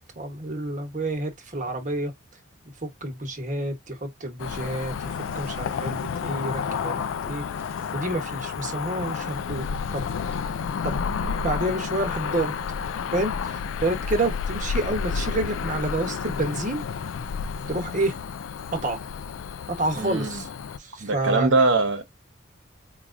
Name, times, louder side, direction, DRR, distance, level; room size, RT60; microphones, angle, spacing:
voice 1, 0.2-2.1 2.8-5.1 5.3-7.4 7.9-9.7 9.9-10.1 10.8-11.0 11.4-12.5 13.1-16.8 17.7-18.2 18.7-19.0 19.7-20.5 20.8-21.5, right 2 dB, 40° right, 1.1 m, -28 dB
Cricket / Motor vehicle (road), 4.4-20.8, left 6 dB, 75° left, 0.3 m, -31 dB
voice 2, 20.0-20.4 21.0-22.0, right 3 dB, 65° right, 1.0 m, -22 dB
4.6 x 2.4 x 2.5 m
head